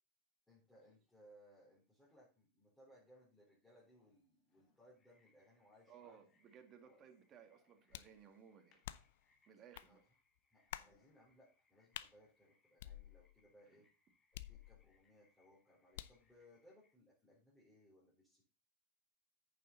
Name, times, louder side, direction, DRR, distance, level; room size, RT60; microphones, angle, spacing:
voice 1, 0.5-6.3 6.8-7.0 9.8-10.0 10.5-13.9 14.3-18.4, equal, 5° left, -6 dB, 4.0 m, -66 dB
sound 1, 3.7-8.0 8.7-9.8 10.3-10.4 10.8-11.2, left 5 dB, 40° left, 2.1 m, -79 dB
sound 2, 4.9-17.0, left 3 dB, 20° left, 2.5 m, -80 dB
voice 2, 5.9-8.8 9.5-10.0, right 8 dB, 35° right, 5 dB, 2.0 m, -61 dB
sound 3, 7.9-8.2 8.8-9.2 9.7-9.9 10.7-11.0 11.9-12.1 12.8-13.4 14.3-15.0 15.9-16.3, left 13 dB, 70° left, 0.6 m, -50 dB
9.1 x 6.8 x 4.0 m, 0.33 s
hypercardioid pair, 120°, 0 cm